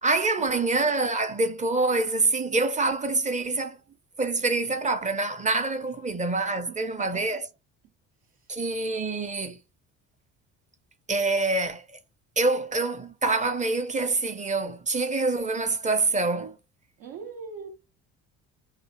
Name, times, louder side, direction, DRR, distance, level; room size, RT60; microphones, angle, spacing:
voice 1, 0.0-3.8 4.2-7.4 8.5-9.6 11.1-11.8 12.4-16.6, right 3 dB, 20° right, 0.6 m, -26 dB
voice 2, 6.7-7.4 8.2-8.6 17.0-17.7, right 5 dB, 65° right, 0.6 m, -41 dB
2.4 x 2.0 x 3.0 m
hypercardioid pair, 65°, 36 cm